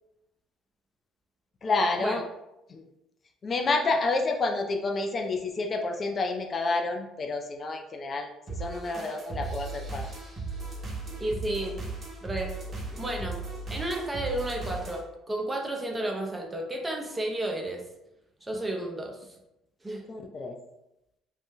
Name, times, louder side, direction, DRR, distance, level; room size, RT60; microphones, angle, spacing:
voice 1, 1.6-2.2 2.7-2.8 3.4-8.3 8.6-10.0 20.1-20.6, left 3 dB, 40° left, 3 dB, 0.4 m, -29 dB
sound 1, 8.5-15.0, right 3 dB, 40° right, 0.9 m, -37 dB
voice 2, 11.2-11.8 12.2-12.5 12.9-13.4 13.7-17.8 18.4-19.2 19.8-20.0, right 1 dB, 20° right, 1 dB, 0.7 m, -32 dB
2.6 x 2.1 x 3.5 m, 0.88 s
hypercardioid pair, 60°, 0 cm